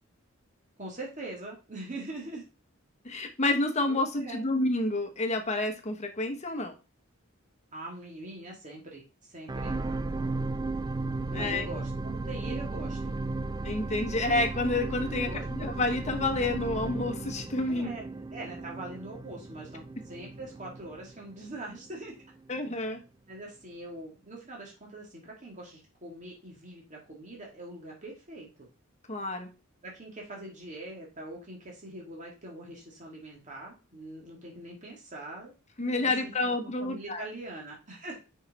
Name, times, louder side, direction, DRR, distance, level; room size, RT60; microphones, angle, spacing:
voice 1, 0.8-2.4 3.9-4.4 7.7-9.7 11.3-13.2 15.1-15.7 17.7-18.0 18.3-22.2 23.3-28.7 29.8-35.5 35.9-38.2, right 2 dB, 35° right, -2 dB, 2.1 m, -43 dB
voice 2, 3.0-6.7 11.3-11.7 13.6-17.9 22.5-23.0 29.1-29.5 35.8-37.2, left 2 dB, 35° left, 6 dB, 1.0 m, -29 dB
sound 1, 9.5-21.9 22.5-22.6, right 2 dB, 20° right, 0.3 m, -35 dB
6.4 x 5.7 x 4.1 m, 0.31 s
head